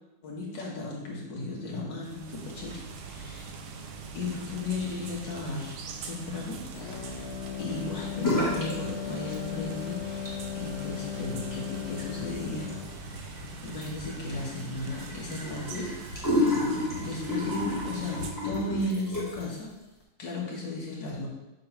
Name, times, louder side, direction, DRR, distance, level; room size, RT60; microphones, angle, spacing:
voice 1, 0.2-3.5 4.1-5.8 6.0-6.6 7.0-7.3 7.6-12.7 13.0-15.9 17.0-19.7 20.2-21.3, left 2 dB, 65° left, -3 dB, 2.0 m, -35 dB
sound 1, 2.0-18.3, right 4 dB, 85° right, 1.5 m, -42 dB
sound 2, 6.7-13.0, left 10 dB, 85° left, 1.5 m, -37 dB
sound 3, 8.2-8.8 9.0-9.7 10.1-19.5, left 1 dB, 10° left, 1.3 m, -32 dB
6.5 x 3.0 x 5.5 m, 0.99 s
omnidirectional pair, 2.2 m